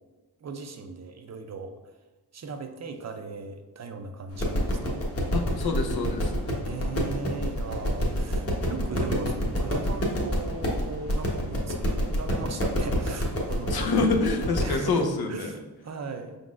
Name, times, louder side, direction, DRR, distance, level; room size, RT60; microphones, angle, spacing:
voice 1, 0.4-1.8 2.3-5.0 6.6-13.9 14.6-16.4, right 4 dB, 45° right, 6 dB, 0.4 m, -38 dB
sound 1, 4.3-14.8, equal, 35° left, 1.1 m, -28 dB
voice 2, 5.3-6.4 13.7-15.5, left 3 dB, 70° left, 4 dB, 0.7 m, -26 dB
5.2 x 3.9 x 2.4 m, 1.2 s
wide cardioid pair, 95°, 40 cm